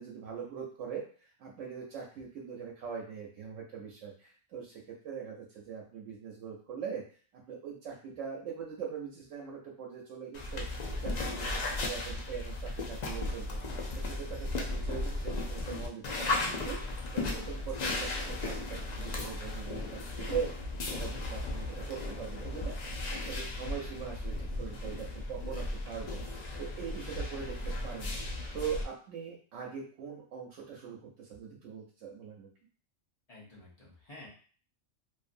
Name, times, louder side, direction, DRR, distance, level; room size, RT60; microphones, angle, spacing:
voice 1, 0.0-7.0 7.3-10.7 11.0-13.6 13.9-26.2 26.6-28.1 28.5-32.5, right 7 dB, 85° right, -1 dB, 0.9 m, -42 dB
sound 1, 10.3-28.8, left 2 dB, 60° left, 0.4 m, -36 dB
voice 2, 17.6-17.9 33.3-34.3, left 2 dB, 35° left, -6 dB, 0.8 m, -52 dB
2.6 x 2.4 x 2.5 m, 0.43 s
omnidirectional pair, 1.3 m